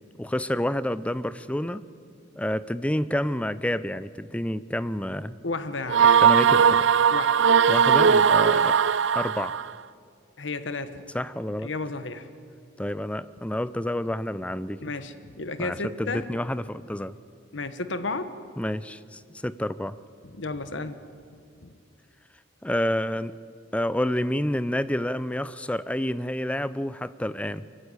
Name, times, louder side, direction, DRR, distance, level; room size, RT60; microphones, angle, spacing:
voice 1, 0.2-1.8 2.4-5.4 6.0-6.9 7.7-8.8 9.1-9.6 11.1-11.7 12.8-14.9 15.6-17.2 18.6-20.0 22.6-23.4 23.7-27.7, left 1 dB, 5° left, 16 dB, 0.4 m, -29 dB
voice 2, 5.4-6.1 7.1-7.4 10.4-11.0 11.6-12.3 14.8-16.2 17.5-18.3 20.4-21.0 21.6-21.7, left 3 dB, 70° left, 11 dB, 1.2 m, -32 dB
sound 1, 5.9-9.7, right 7 dB, 70° right, 0.5 m, -19 dB
23.0 x 15.0 x 9.7 m, 2.3 s
head